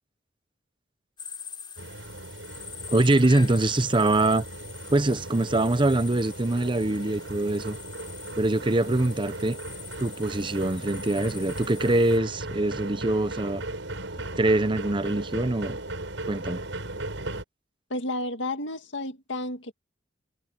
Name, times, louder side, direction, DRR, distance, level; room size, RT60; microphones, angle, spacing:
sound 1, 1.2-12.2, left 7 dB, 25° left, 4.2 m, -44 dB
sound 2, 1.8-17.4, right 2 dB, 90° right, 6.2 m, -37 dB
voice 1, 2.9-4.5 4.9-7.8 8.4-9.6 10.0-13.6 14.2-15.8 16.3-16.6, right 2 dB, 25° right, 0.8 m, -24 dB
voice 2, 17.9-19.7, left 1 dB, 70° left, 2.2 m, -31 dB
head